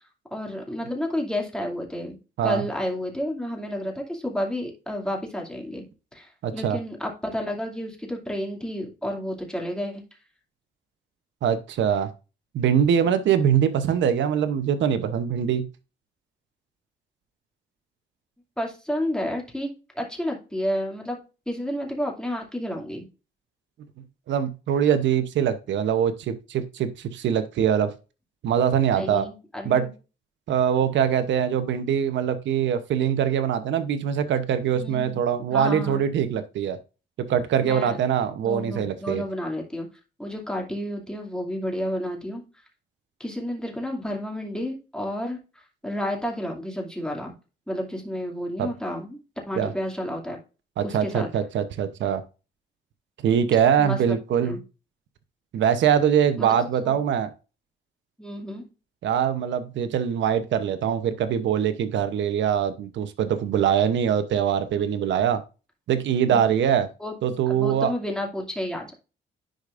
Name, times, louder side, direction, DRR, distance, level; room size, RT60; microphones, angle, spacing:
voice 1, 0.3-5.8 6.1-10.0 13.0-13.1 18.6-21.2 21.5-23.1 29.0-29.9 34.7-35.2 35.5-36.0 37.6-38.0 38.4-39.9 40.2-42.4 43.2-45.4 45.8-47.3 47.7-49.2 49.5-50.4 50.8-51.3 53.8-54.2 54.4-54.6 56.4-56.5 56.8-57.0 58.2-58.7 66.3-66.5 67.0-67.1 67.5-68.9, equal, 5° left, 2.4 m, -31 dB
voice 2, 6.4-6.8 11.4-12.1 12.5-15.7 24.3-27.9 28.4-29.3 29.6-29.9 30.5-36.8 37.2-39.2 48.6-48.7 49.6-49.7 50.8-52.2 53.2-54.6 55.5-57.3 59.0-65.4 65.9-66.9 67.2-67.9, right 8 dB, 70° right, 0.8 m, -23 dB
10.5 x 4.9 x 2.5 m
cardioid pair, 90°, 20 cm